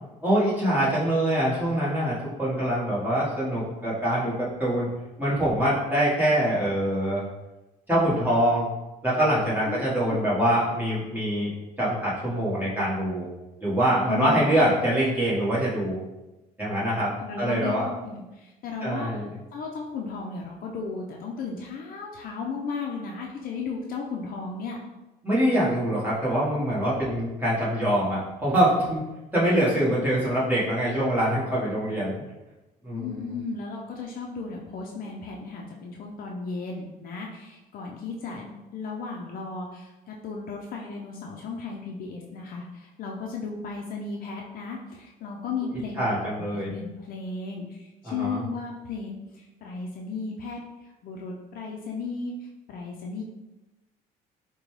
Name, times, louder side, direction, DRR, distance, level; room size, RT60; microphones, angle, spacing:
voice 1, 0.2-4.9 5.2-7.2 7.9-8.7 9.0-11.5 11.8-13.2 13.6-16.0 16.6-17.9 18.8-19.3 25.2-29.0 29.3-32.1 32.8-33.4 46.0-46.7 48.0-48.4, right 1 dB, 10° right, -8 dB, 1.3 m, -24 dB
voice 2, 9.7-10.2 14.1-14.6 17.2-19.1 19.5-24.8 32.9-53.2, left 4 dB, 60° left, 0 dB, 0.5 m, -35 dB
5.0 x 2.2 x 3.1 m, 1.0 s
cardioid pair, 110°, 17 cm